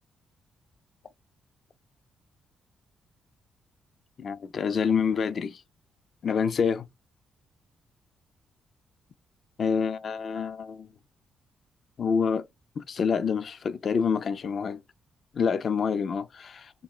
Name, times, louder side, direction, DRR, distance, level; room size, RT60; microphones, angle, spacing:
voice 1, 4.2-5.6 6.2-6.9 9.6-10.9 12.0-12.5 12.8-14.8 15.3-16.7, left 6 dB, 40° left, 0.4 m, -27 dB
3.5 x 2.3 x 3.5 m
wide cardioid pair, 165°, 0 cm